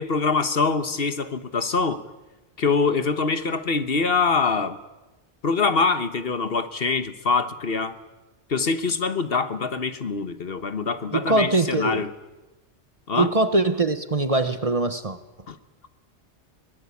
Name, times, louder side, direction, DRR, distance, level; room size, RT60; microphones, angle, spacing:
voice 1, 0.0-2.0 2.6-4.8 5.4-8.0 8.5-12.1 13.1-13.3 15.5-15.6, left 4 dB, 55° left, 1.4 m, -24 dB
voice 2, 11.1-12.0 13.1-15.2, right 2 dB, 30° right, 1.2 m, -22 dB
23.0 x 19.5 x 8.5 m
omnidirectional pair, 1.2 m